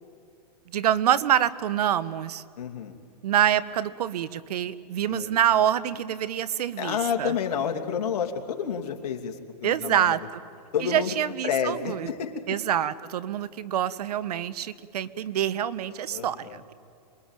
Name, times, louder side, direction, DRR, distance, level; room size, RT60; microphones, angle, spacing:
voice 1, 0.7-2.4 3.2-7.3 9.6-10.2 10.8-12.1 12.5-16.7, right 10 dB, 70° right, 17 dB, 1.1 m, -26 dB
voice 2, 2.6-2.9 5.1-5.3 6.8-10.2 10.7-11.1 11.4-12.6 16.1-16.6, left 7 dB, 70° left, 4 dB, 2.8 m, -30 dB
26.5 x 22.0 x 9.0 m, 2.5 s
hypercardioid pair, 135°, 21 cm